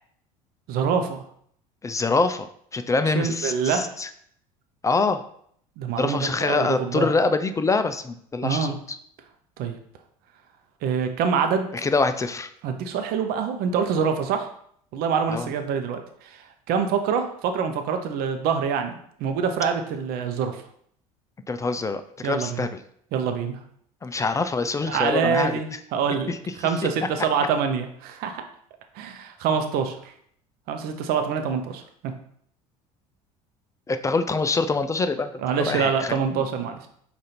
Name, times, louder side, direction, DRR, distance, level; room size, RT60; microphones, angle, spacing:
voice 1, 0.7-1.2 3.1-3.9 5.8-7.1 8.4-8.8 9.6-9.8 10.8-11.7 12.6-14.5 14.9-16.4 16.7-20.6 22.2-22.7 23.1-23.6 24.9-28.4 28.9-30.0 30.7-32.1 35.4-36.9, right 6 dB, 55° right, 6 dB, 0.7 m, -25 dB
voice 2, 1.8-2.5 2.7-4.1 4.8-5.2 6.0-8.7 11.8-12.5 15.3-15.5 21.5-22.7 24.0-25.5 26.3-26.7 33.9-35.3 35.6-36.4, left 3 dB, 15° left, 10 dB, 0.4 m, -25 dB
4.9 x 2.6 x 4.2 m, 0.65 s
hypercardioid pair, 65°, 18 cm